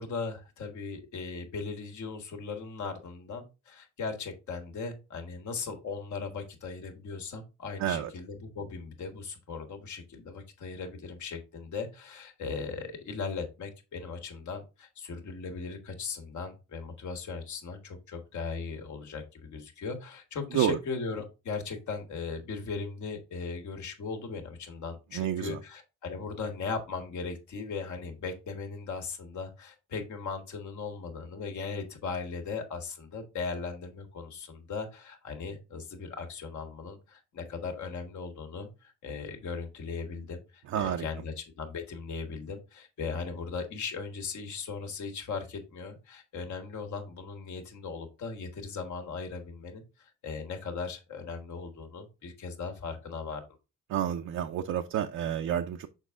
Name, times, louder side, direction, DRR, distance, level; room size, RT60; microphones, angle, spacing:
voice 1, 0.0-53.5, left 4 dB, 70° left, 1.8 m, -38 dB
voice 2, 7.8-8.1 20.5-20.8 25.1-25.6 40.7-41.1 53.9-55.9, right 10 dB, 70° right, 0.6 m, -29 dB
6.5 x 4.7 x 3.7 m
cardioid pair, 90°, 30 cm